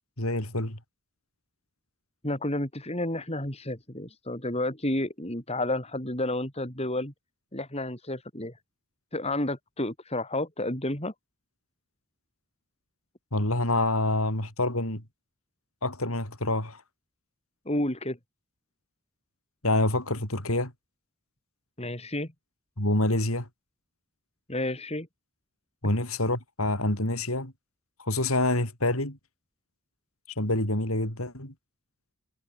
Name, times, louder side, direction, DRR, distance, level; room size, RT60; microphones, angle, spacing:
voice 1, 0.2-0.8 13.3-15.0 15.8-16.8 19.6-20.7 22.8-23.5 25.8-27.5 28.0-29.2 30.4-31.5, left 1 dB, 70° left, 7.8 m, -27 dB
voice 2, 2.2-7.1 7.5-8.5 9.1-11.1 17.7-18.2 21.8-22.3 24.5-25.1, left 1 dB, 30° left, 5.6 m, -31 dB
head